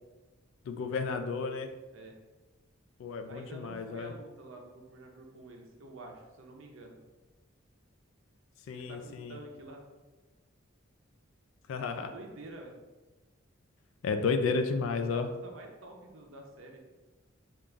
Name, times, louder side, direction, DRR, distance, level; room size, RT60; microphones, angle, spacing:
voice 1, 0.7-1.7 3.0-4.1 8.7-9.4 11.7-12.1 14.0-15.3, left 4 dB, 75° left, 8 dB, 0.3 m, -32 dB
voice 2, 3.3-7.0 8.7-9.8 11.8-12.7 14.9-16.8, right 2 dB, 75° right, 2 dB, 0.6 m, -48 dB
3.7 x 2.4 x 3.3 m, 1.2 s
head